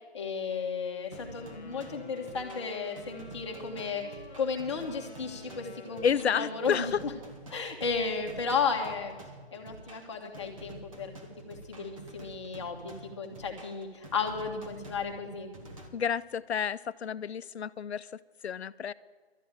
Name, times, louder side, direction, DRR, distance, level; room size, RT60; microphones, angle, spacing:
voice 1, 0.1-7.1 7.5-9.2 9.5-11.1 11.5-15.5, left 5 dB, 25° left, 1 dB, 1.3 m, -34 dB
sound 1, 1.1-7.7, left 5 dB, ahead, 0.8 m, -50 dB
sound 2, 1.1-15.9, right 1 dB, 30° right, 1.4 m, -49 dB
voice 2, 6.0-7.0 15.9-18.9, left 7 dB, 85° left, 16 dB, 0.6 m, -30 dB
12.5 x 8.3 x 8.8 m, 1.5 s
hypercardioid pair, 170°, 32 cm